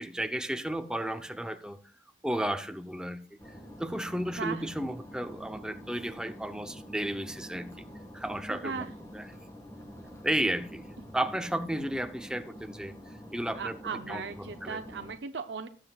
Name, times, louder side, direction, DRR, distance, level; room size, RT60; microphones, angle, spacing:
voice 1, 0.0-1.8 2.2-3.4 3.8-7.9 8.1-9.2 10.2-10.9 11.1-13.0 13.3-13.8 14.1-14.8, right 1 dB, 5° right, 0.7 m, -33 dB
sound 1, 3.4-15.1, equal, 15° left, 1.6 m, -47 dB
voice 2, 4.4-4.7 8.5-8.9 13.5-15.7, right 5 dB, 85° right, 0.7 m, -37 dB
19.5 x 7.8 x 2.4 m
head